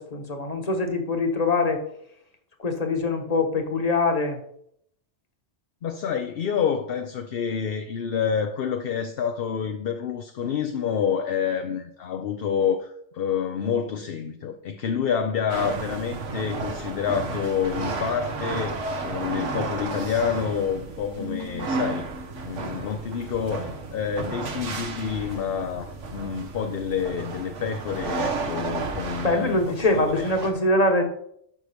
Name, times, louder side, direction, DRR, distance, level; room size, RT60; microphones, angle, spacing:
voice 1, 0.0-1.8 2.6-4.4 29.2-31.0, left 2 dB, 35° left, 1.3 m, -23 dB
voice 2, 5.8-22.1 22.4-29.6 29.9-30.3, left 7 dB, 60° left, 0.8 m, -28 dB
sound 1, 15.5-30.5, right 3 dB, 80° right, 1.5 m, -32 dB
12.0 x 6.3 x 3.5 m
omnidirectional pair, 1.2 m